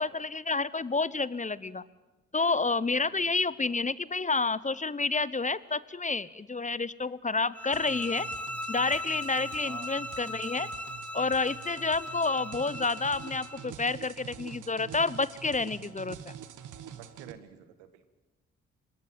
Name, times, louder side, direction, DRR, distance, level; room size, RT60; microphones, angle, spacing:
voice 1, 0.0-1.8 2.3-8.3 8.7-10.7 11.1-16.3, left 3 dB, 20° left, 19 dB, 0.9 m, -29 dB
sound 1, 7.5-13.7, left 1 dB, 5° left, 1.8 m, -39 dB
sound 2, 7.7-17.3, right 9 dB, 60° right, 1.5 m, -46 dB
voice 2, 9.6-10.0 16.9-18.1, right 11 dB, 85° right, 12 dB, 1.4 m, -50 dB
25.5 x 20.0 x 7.5 m, 1.1 s
hypercardioid pair, 40°, 35 cm